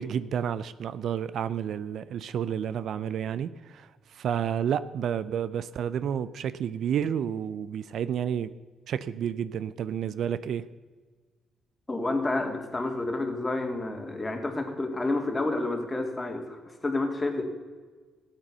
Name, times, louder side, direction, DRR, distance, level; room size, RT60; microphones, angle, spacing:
voice 1, 0.0-3.9 4.2-8.5 8.9-10.6, right 8 dB, 70° right, 15 dB, 0.5 m, -30 dB
voice 2, 11.9-17.6, left 2 dB, 20° left, 3 dB, 2.4 m, -30 dB
15.0 x 9.0 x 6.7 m, 1.5 s
cardioid pair, 90°, 0 cm